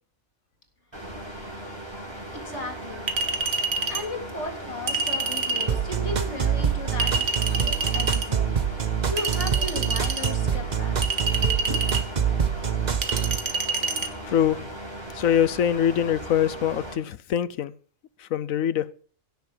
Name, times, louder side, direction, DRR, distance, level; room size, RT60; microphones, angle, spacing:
sound 1, 0.9-17.0, right 1 dB, 20° right, 5.3 m, -38 dB
voice 1, 2.3-3.1 3.9-7.3 7.6-8.6 9.1-11.0 11.7-11.9, left 2 dB, 60° left, 3.8 m, -35 dB
Chink clink, 3.1-4.1 4.9-5.7 7.0-8.3 9.2-10.3 11.0-12.1 13.0-14.1, right 4 dB, 60° right, 1.7 m, -27 dB
sound 2, 5.7-13.4, right 7 dB, 35° right, 0.9 m, -25 dB
voice 2, 14.2-14.7 15.1-17.7 18.2-18.9, left 9 dB, 80° left, 1.2 m, -23 dB
16.5 x 7.3 x 7.4 m
omnidirectional pair, 1.4 m